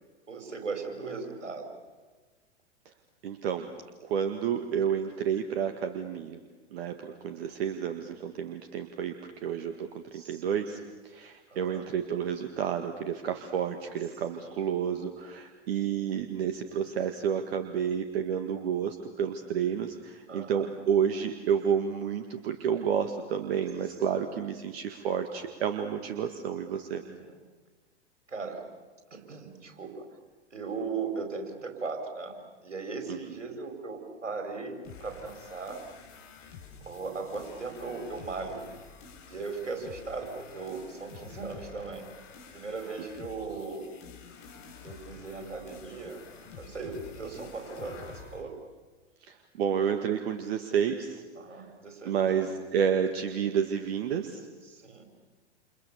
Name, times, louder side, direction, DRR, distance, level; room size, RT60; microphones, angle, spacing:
voice 1, 0.3-1.7 5.2-5.3 10.1-10.7 11.5-11.8 14.4-14.6 20.3-20.7 27.0-27.3 28.3-28.6 29.1-30.1 30.5-32.4 32.6-35.8 36.8-38.6 39.3-42.1 42.5-43.9 44.8-46.2 46.6-48.6 51.4-52.5 54.6-55.0, right 4 dB, 85° right, 5 dB, 5.0 m, -38 dB
voice 2, 3.2-3.7 4.0-6.4 6.7-27.0 33.1-33.2 49.2-51.2 51.5-51.7 52.1-54.5, right 8 dB, 60° right, 6 dB, 1.9 m, -30 dB
sound 1, 34.8-48.4, left 5 dB, 40° left, 6.6 m, -49 dB
29.0 x 29.0 x 7.1 m, 1.4 s
figure-of-eight pair, 105°, 36 cm